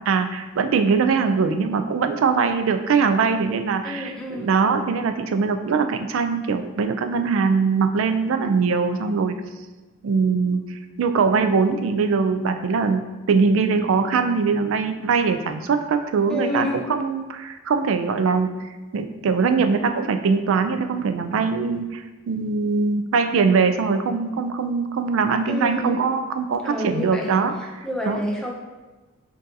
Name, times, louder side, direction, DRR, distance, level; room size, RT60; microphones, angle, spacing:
voice 1, 0.1-9.3 10.0-10.6 11.0-18.5 18.9-28.2, right 5 dB, 65° right, 7 dB, 0.3 m, -22 dB
voice 2, 3.8-4.5 16.3-16.8 25.5-26.1 26.6-27.3 27.8-28.5, left 1 dB, 5° left, -2 dB, 0.5 m, -28 dB
5.9 x 2.6 x 2.6 m, 1.2 s
head